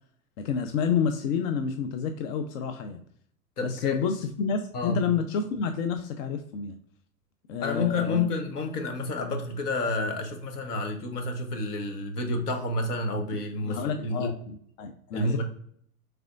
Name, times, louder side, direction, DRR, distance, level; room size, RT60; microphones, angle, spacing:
voice 1, 0.4-3.0 3.6-6.8 7.5-8.3 13.6-15.4, left 6 dB, 60° left, 7 dB, 0.6 m, -29 dB
voice 2, 3.6-4.0 4.7-5.0 7.6-14.3 15.1-15.4, left 2 dB, 80° left, 5 dB, 1.0 m, -29 dB
4.9 x 3.3 x 2.4 m, 0.64 s
hypercardioid pair, 100°, 46 cm